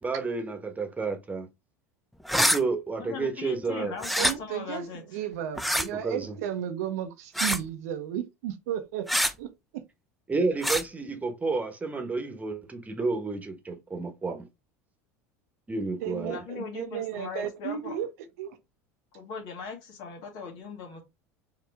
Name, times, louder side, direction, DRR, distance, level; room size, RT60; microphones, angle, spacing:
voice 1, 0.0-1.5 2.4-3.9 6.0-6.4 10.3-14.5 15.7-16.4, right 3 dB, 20° right, 1.3 m, -30 dB
sound 1, 2.3-2.6 4.0-4.3 5.6-5.9 7.4-7.7 9.1-9.3 10.6-10.8, equal, ahead, 0.5 m, -25 dB
voice 2, 3.0-5.2 16.3-17.9 19.1-21.0, left 5 dB, 60° left, 2.0 m, -39 dB
voice 3, 4.2-9.8 16.0-18.1 18.4-18.6, right 10 dB, 75° right, 0.8 m, -34 dB
4.7 x 3.1 x 3.4 m
hypercardioid pair, 80°, 8 cm